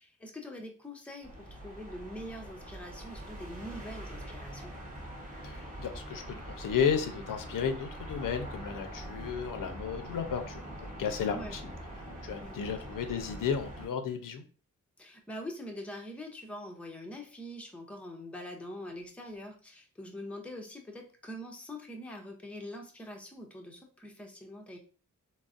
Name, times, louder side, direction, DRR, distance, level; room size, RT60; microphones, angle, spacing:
voice 1, 0.0-4.7 5.9-6.0 6.4-6.5 11.3-11.6 12.4-12.7 15.0-24.8, left 1 dB, 5° left, 1 dB, 0.5 m, -44 dB
sound 1, 1.2-13.9, right 1 dB, 25° right, 1.0 m, -43 dB
voice 2, 5.4-11.7 12.2-14.4, left 7 dB, 80° left, 7 dB, 0.5 m, -33 dB
3.8 x 2.0 x 2.4 m, 0.38 s
wide cardioid pair, 120°, 32 cm